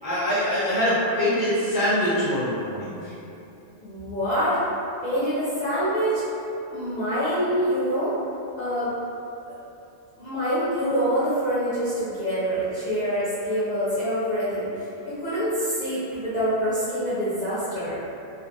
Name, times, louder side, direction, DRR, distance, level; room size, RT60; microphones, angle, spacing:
voice 1, 0.0-3.1, equal, 5° right, -12 dB, 0.7 m, -24 dB
voice 2, 3.8-4.6 5.0-6.2 6.7-8.1 8.6-8.9 9.5-9.6 10.2-18.0, equal, 40° left, -14 dB, 0.7 m, -26 dB
2.5 x 2.4 x 2.7 m, 2.8 s
omnidirectional pair, 1.4 m